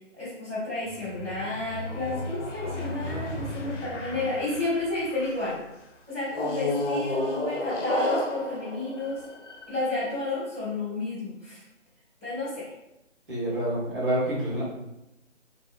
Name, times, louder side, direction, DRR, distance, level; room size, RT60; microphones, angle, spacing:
voice 1, 0.1-5.6 6.1-9.2 9.7-11.6 12.2-12.7 14.6-14.7, left 2 dB, ahead, -22 dB, 0.7 m, -31 dB
sound 1, 0.9-5.5 6.3-9.9, left 1 dB, 70° left, 0.6 m, -32 dB
voice 2, 13.3-14.6, right 1 dB, 45° right, -8 dB, 1.1 m, -27 dB
2.6 x 2.0 x 2.4 m, 0.88 s
figure-of-eight pair, 160°, 37 cm